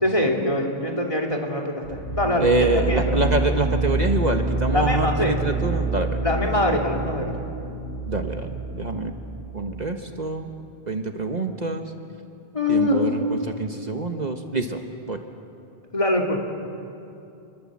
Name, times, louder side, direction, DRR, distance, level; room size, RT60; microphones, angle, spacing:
voice 1, 0.0-3.2 4.7-5.4 6.2-7.3 12.5-13.1 15.9-16.4, left 1 dB, 30° left, 2 dB, 2.9 m, -23 dB
sound 1, 1.8-9.5, right 3 dB, 65° left, 8.4 m, -27 dB
voice 2, 2.4-6.2 8.1-9.1 9.5-10.5 10.9-11.9 12.7-14.8 15.1-15.2, right 2 dB, 45° right, 5 dB, 1.3 m, -26 dB
28.5 x 21.5 x 7.5 m, 2.7 s
omnidirectional pair, 1.0 m